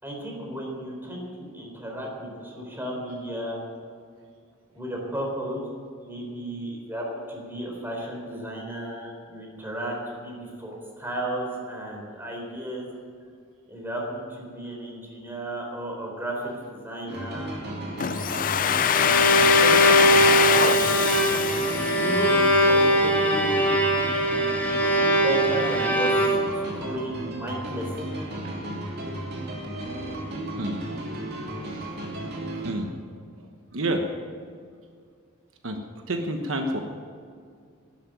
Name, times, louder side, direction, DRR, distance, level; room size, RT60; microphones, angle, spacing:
voice 1, 0.0-3.6 4.7-5.7 6.0-12.9 13.7-17.5 19.5-20.2 20.5-21.0 21.8-23.8 24.7-24.9 25.2-28.1, right 1 dB, 10° right, -1 dB, 4.0 m, -34 dB
sound 1, 17.1-32.7, right 1 dB, 55° right, 2.8 m, -34 dB
Domestic sounds home sounds, 18.0-22.8, left 9 dB, 40° left, 0.4 m, -23 dB
Bowed string instrument, 18.6-26.7, equal, 10° left, 2.9 m, -21 dB
voice 2, 30.5-30.8 31.6-31.9 32.6-32.9 33.7-34.1 35.6-35.8 36.1-36.8, right 1 dB, 70° right, 4 dB, 1.2 m, -29 dB
12.0 x 11.0 x 9.2 m, 2.2 s
head